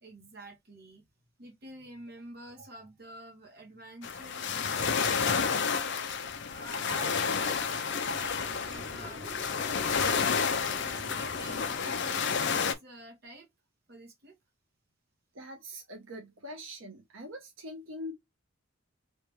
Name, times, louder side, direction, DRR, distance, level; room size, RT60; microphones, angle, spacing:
voice 1, 0.0-1.0 1.4-10.0 10.8-13.5 13.9-14.4, right 2 dB, 55° right, 1.5 m, -48 dB
sound 1, 4.0-12.7, left 6 dB, 60° left, 0.6 m, -30 dB
sound 2, 6.5-12.6, right 2 dB, 20° right, 0.5 m, -49 dB
voice 2, 15.3-18.1, left 1 dB, 85° right, 1.0 m, -43 dB
3.4 x 2.8 x 3.0 m
head